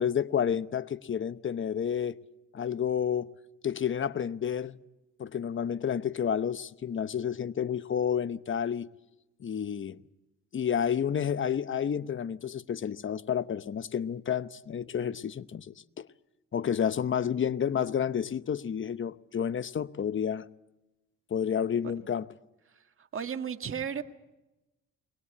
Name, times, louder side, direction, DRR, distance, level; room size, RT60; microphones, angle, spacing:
voice 1, 0.0-2.2 2.5-3.3 3.6-4.8 5.2-8.9 9.4-10.0 10.5-16.1 16.5-20.5 21.3-22.3, left 8 dB, 40° left, 0.9 m, -30 dB
voice 2, 23.1-24.0, right 7 dB, 45° right, 1.8 m, -33 dB
22.5 x 19.5 x 8.5 m
cardioid pair, 90°, 30 cm